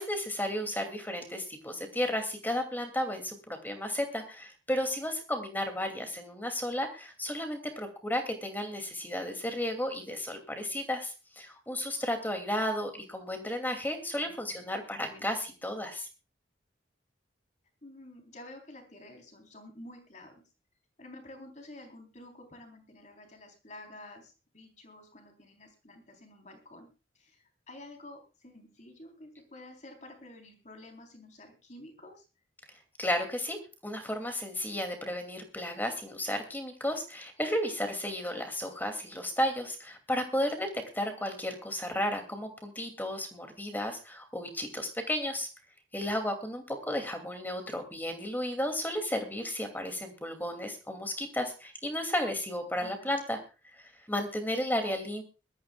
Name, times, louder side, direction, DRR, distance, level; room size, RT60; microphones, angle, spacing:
voice 1, 0.0-16.1 33.0-33.6 33.8-45.5 45.9-53.4 53.7-55.2, left 1 dB, 10° left, 6 dB, 2.5 m, -33 dB
voice 2, 14.2-14.6 15.1-15.3 17.8-20.4 21.0-26.9 27.2-32.3 52.8-53.1, left 1 dB, 40° left, 4 dB, 3.7 m, -50 dB
22.5 x 13.5 x 2.3 m, 0.31 s
head